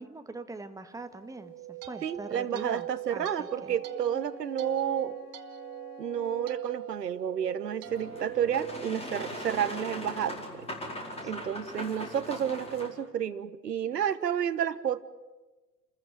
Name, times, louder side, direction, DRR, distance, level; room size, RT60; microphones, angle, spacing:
voice 1, 0.0-3.8 11.2-11.5, right 3 dB, 5° right, 8 dB, 1.6 m, -43 dB
sound 1, 1.3-9.6, right 15 dB, 30° right, 1.8 m, -41 dB
voice 2, 2.0-5.2 6.0-10.7 11.2-15.0, right 9 dB, 75° right, 15 dB, 1.3 m, -31 dB
Wind instrument woodwind instrument, 3.1-6.7, left 8 dB, 45° left, 2.2 m, -51 dB
Boat Water vehicle, 7.9-12.9, left 1 dB, 10° left, 4.8 m, -40 dB
29.5 x 14.5 x 9.1 m, 1.2 s
figure-of-eight pair, 100°, 49 cm